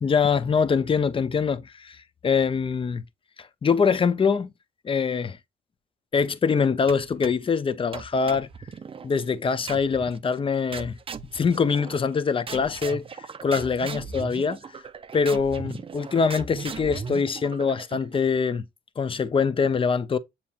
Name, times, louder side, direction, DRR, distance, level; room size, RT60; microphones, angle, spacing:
voice 1, 0.0-3.0 3.4-4.5 4.8-5.4 6.1-8.5 9.0-11.0 11.3-13.0 13.4-14.6 15.1-18.6 19.0-20.2, left 5 dB, 25° left, 0.5 m, -24 dB
sound 1, 6.9-7.5 7.9-9.1 9.7-10.2 10.7-12.2 12.5-18.2, right 5 dB, 25° right, 0.5 m, -38 dB
7.0 x 2.9 x 2.2 m
cardioid pair, 90°, 20 cm